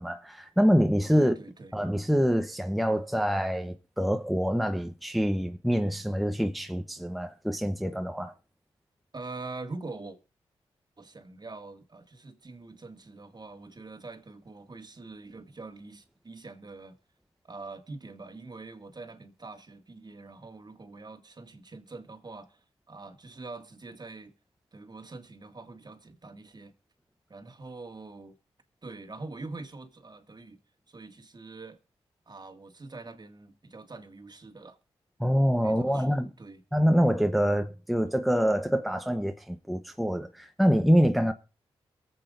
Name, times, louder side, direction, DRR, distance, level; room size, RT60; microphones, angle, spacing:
voice 1, 0.0-1.3 1.7-8.3 35.2-36.3 36.7-41.3, equal, ahead, 1.0 m, -25 dB
voice 2, 1.1-1.8 9.1-10.2 11.0-17.0 17.4-22.6 22.9-24.3 24.7-26.7 27.3-28.4 28.8-30.6 30.9-31.8 32.3-34.8 35.6-36.6, right 3 dB, 40° right, 2.0 m, -44 dB
22.5 x 8.0 x 2.6 m
supercardioid pair, 40°, 11 cm